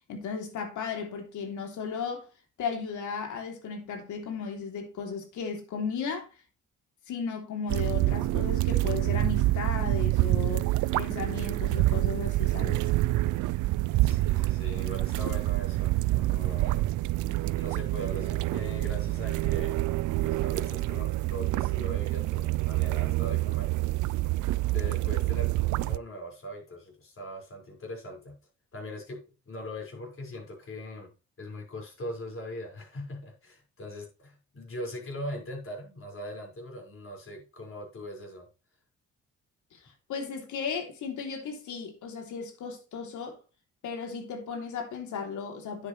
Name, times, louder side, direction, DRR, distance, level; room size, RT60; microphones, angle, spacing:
voice 1, 0.1-2.3 2.6-6.3 7.1-12.9 39.7-39.8 40.1-43.4 43.8-45.9, left 6 dB, 80° left, 3.3 m, -35 dB
sound 1, 7.7-26.0, right 18 dB, 75° right, 0.5 m, -27 dB
voice 2, 14.0-16.9 17.6-19.8 20.2-23.7 24.7-28.4 28.7-31.1 31.4-38.5, equal, 45° left, 5.6 m, -40 dB
9.9 x 8.4 x 3.3 m
cardioid pair, 90°, 30 cm